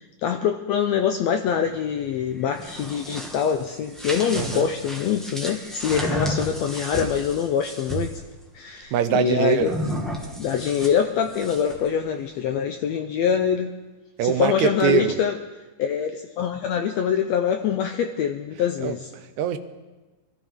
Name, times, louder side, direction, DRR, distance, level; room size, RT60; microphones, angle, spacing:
voice 1, 0.2-8.2 8.5-9.9 10.4-13.7 14.2-15.4 15.8-19.1, left 8 dB, 90° left, 6 dB, 1.5 m, -24 dB
sound 1, 2.4-8.2 9.6-11.9, equal, ahead, 1.0 m, -32 dB
voice 2, 4.4-4.7 7.0-7.1 8.9-9.8 14.2-15.1 18.8-19.6, right 10 dB, 70° right, 9 dB, 2.0 m, -23 dB
24.0 x 14.0 x 3.7 m, 1.2 s
omnidirectional pair, 3.8 m